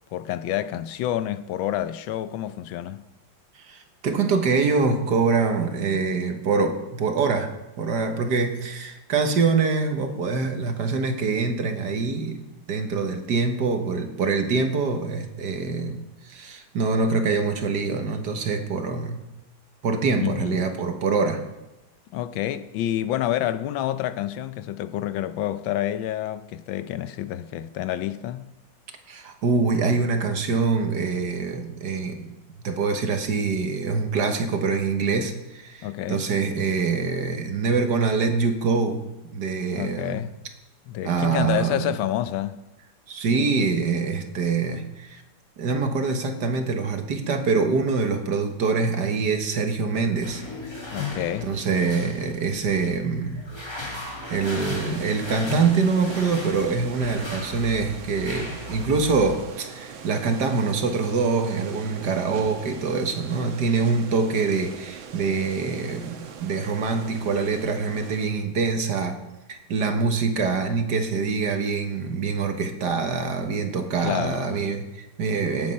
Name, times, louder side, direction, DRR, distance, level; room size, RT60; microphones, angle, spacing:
voice 1, 0.1-3.0 20.2-20.6 22.1-28.5 35.8-36.2 39.7-40.3 40.9-42.6 50.9-51.5 74.0-74.6, left 12 dB, 80° left, 1.4 m, -28 dB
voice 2, 3.6-7.5 7.8-12.4 12.7-16.0 16.2-19.2 19.8-21.4 29.1-32.3 32.6-39.0 39.3-40.3 41.0-42.0 43.1-45.2 45.6-50.4 51.4-53.5 54.3-69.2 69.5-75.7, right 4 dB, 60° right, 1.8 m, -24 dB
sound 1, 50.2-59.3, left 3 dB, 15° left, 2.1 m, -36 dB
sound 2, 54.5-68.3, right 6 dB, 90° right, 1.9 m, -42 dB
16.5 x 8.6 x 5.5 m
omnidirectional pair, 2.1 m